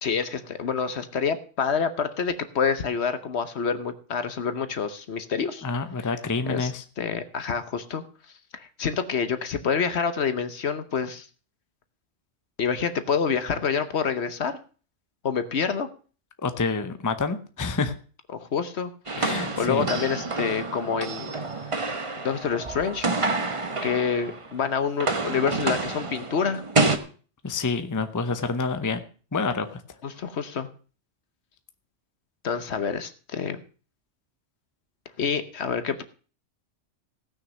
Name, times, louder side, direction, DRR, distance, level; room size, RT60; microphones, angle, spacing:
voice 1, 0.0-5.6 6.5-6.7 7.0-8.0 8.5-11.3 12.6-14.6 15.2-15.9 18.3-18.9 19.6-21.3 22.2-23.1 23.8-26.6 30.0-30.7 32.4-33.6 35.2-35.9, left 6 dB, 60° left, 11 dB, 1.2 m, -27 dB
voice 2, 5.6-6.8 16.4-17.9 19.2-19.9 27.4-29.0 29.3-29.8, left 4 dB, 15° left, 9 dB, 0.7 m, -28 dB
sound 1, 19.1-24.5 24.8-27.0, right 3 dB, 25° right, 1.0 m, -28 dB
17.0 x 6.4 x 6.3 m, 0.40 s
omnidirectional pair, 1.3 m